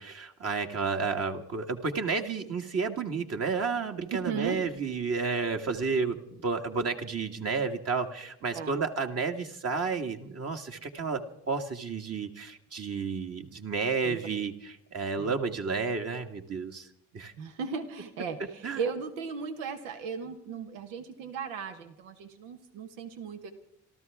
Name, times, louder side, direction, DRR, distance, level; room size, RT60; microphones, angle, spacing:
voice 1, 0.0-16.9 17.1-17.3 18.6-18.8, right 5 dB, 40° right, 4 dB, 1.8 m, -31 dB
voice 2, 4.3-4.6 8.5-8.8 14.0-14.2 15.2-15.4 17.4-23.5, right 6 dB, 85° right, 7 dB, 1.5 m, -36 dB
27.0 x 13.5 x 3.6 m, 0.78 s
hypercardioid pair, 65°, 37 cm